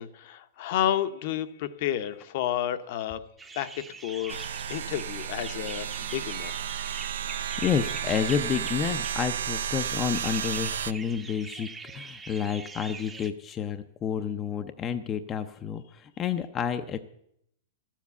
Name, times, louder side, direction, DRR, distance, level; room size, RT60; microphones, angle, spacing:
voice 1, 0.0-3.2 3.5-3.7 4.0-4.4 4.7-6.7, left 11 dB, 50° left, 11 dB, 0.8 m, -30 dB
sound 1, 3.4-13.3, right 4 dB, 10° right, 0.7 m, -43 dB
sound 2, 4.3-10.9, right 9 dB, 85° right, 0.5 m, -33 dB
voice 2, 7.1-11.7 11.9-17.0, left 8 dB, 20° left, 8 dB, 0.5 m, -30 dB
13.0 x 7.4 x 8.1 m, 0.73 s
hypercardioid pair, 150°, 0 cm